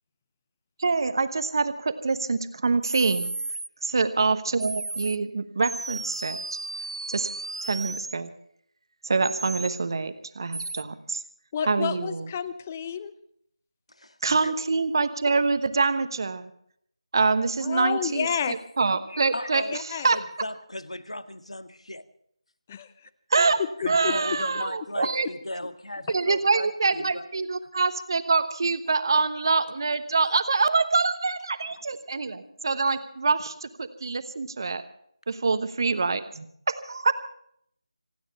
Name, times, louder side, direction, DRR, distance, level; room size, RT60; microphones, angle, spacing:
voice 1, 0.8-3.3 3.8-6.4 7.1-7.3 7.6-8.3 9.0-11.2 11.6-12.3 14.2-16.5 17.1-20.2 23.3-23.6 23.9-25.3 26.1-34.8 35.3-37.1, right 4 dB, 45° right, 11 dB, 1.1 m, -25 dB
sound 1, 2.8-3.7 4.6-5.2 5.6-8.2 9.2-9.8 10.5-10.8, right 2 dB, 65° right, 0.5 m, -34 dB
voice 2, 11.5-13.1 17.6-18.6 19.7-20.1 22.7-22.9 24.0-24.4, left 8 dB, 20° left, 16 dB, 0.6 m, -30 dB
voice 3, 13.9-14.5 19.1-19.8 20.1-22.0 23.8-27.2 27.6-27.7 32.4-32.5, left 1 dB, 85° left, 9 dB, 1.8 m, -37 dB
26.5 x 9.4 x 5.4 m, 0.68 s
figure-of-eight pair, 165°, 3 cm